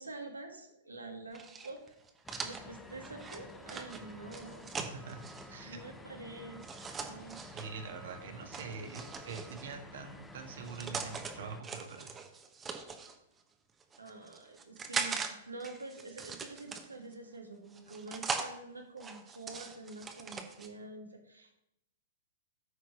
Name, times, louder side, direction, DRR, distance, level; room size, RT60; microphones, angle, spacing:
voice 1, 0.0-1.8 2.4-4.8 5.6-7.4 14.0-21.6, right 3 dB, 85° right, 3 dB, 1.7 m, -47 dB
sound 1, 1.3-5.5 6.6-7.7 8.5-9.7 10.4-11.3 11.6-13.1 13.8-15.3 15.6-17.1 17.7-18.5 19.0-20.7, right 5 dB, 20° right, 1.1 m, -41 dB
sound 2, 2.2-11.6, left 2 dB, 10° left, 0.8 m, -51 dB
voice 2, 4.8-6.0 7.5-12.1, right 5 dB, 60° right, 5 dB, 1.5 m, -45 dB
9.7 x 4.6 x 5.7 m, 0.82 s
figure-of-eight pair, 105°, 0 cm